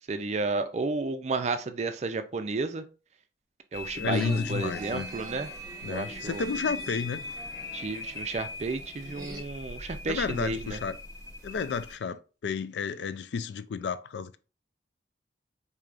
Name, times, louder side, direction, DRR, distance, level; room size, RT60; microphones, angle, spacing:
voice 1, 0.1-2.8 3.7-5.5 5.9-6.4 7.7-10.8, right 3 dB, 40° right, 0.4 m, -32 dB
sound 1, 3.7-11.9, left 2 dB, 20° left, 0.9 m, -40 dB
voice 2, 3.9-5.1 5.8-7.3 10.1-11.0 11.4-14.4, left 5 dB, 75° left, 0.3 m, -31 dB
sound 2, 4.1-9.4, equal, 20° right, 1.0 m, -45 dB
4.6 x 2.8 x 2.5 m
head